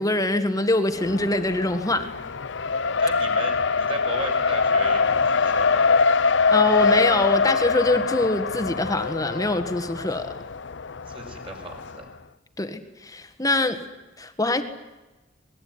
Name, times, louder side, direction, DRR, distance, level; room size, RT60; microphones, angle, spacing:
voice 1, 0.0-2.0 6.5-10.3 12.6-13.8 14.2-14.6, left 2 dB, 20° left, 8 dB, 1.8 m, -24 dB
Race car auto racing, 0.9-12.0, left 4 dB, 70° left, 0.8 m, -23 dB
voice 2, 3.0-5.9 11.1-12.1, right 2 dB, 30° right, 2 dB, 5.6 m, -36 dB
25.5 x 20.5 x 9.6 m, 1.1 s
head